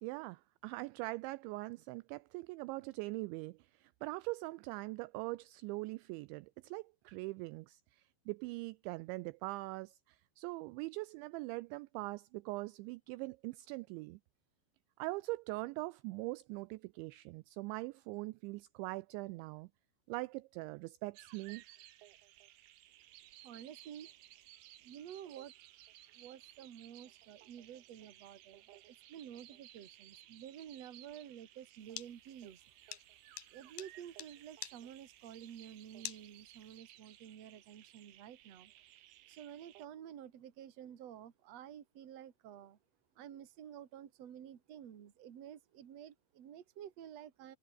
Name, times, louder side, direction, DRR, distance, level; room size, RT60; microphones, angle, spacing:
voice 1, 0.0-14.2 15.0-19.7 20.1-21.6, right 22 dB, 85° right, 2.6 m, -42 dB
sound 1, 21.1-39.9, right 14 dB, 70° right, 2.8 m, -59 dB
voice 2, 23.4-24.1 24.8-25.5 26.1-32.6 33.5-38.7 39.3-42.8 43.2-47.6, right 10 dB, 50° right, 2.2 m, -51 dB
sound 2, 31.8-36.8, left 14 dB, 75° left, 2.2 m, -48 dB
omnidirectional pair, 5.7 m